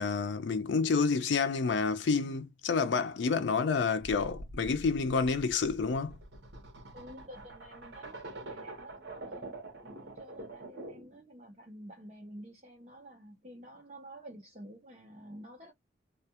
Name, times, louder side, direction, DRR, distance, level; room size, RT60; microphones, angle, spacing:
voice 1, 0.0-6.2, left 5 dB, 80° left, 0.4 m, -29 dB
sound 1, 4.1-11.2, right 2 dB, 70° right, 0.9 m, -46 dB
voice 2, 6.9-9.5 9.8-15.7, right 1 dB, 40° right, 0.6 m, -50 dB
2.3 x 2.2 x 2.7 m
head